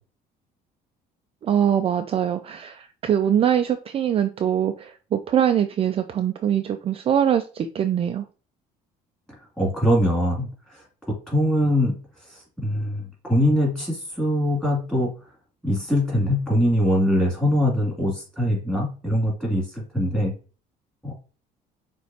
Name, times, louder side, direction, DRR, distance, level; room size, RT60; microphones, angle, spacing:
voice 1, 1.4-8.2, right 9 dB, 35° right, 7 dB, 0.4 m, -23 dB
voice 2, 9.6-12.0 12.2-15.1 15.6-20.3 21.0-21.1, equal, 5° left, -2 dB, 2.6 m, -23 dB
6.2 x 3.0 x 2.8 m, 0.37 s
cardioid pair, 115°, 17 cm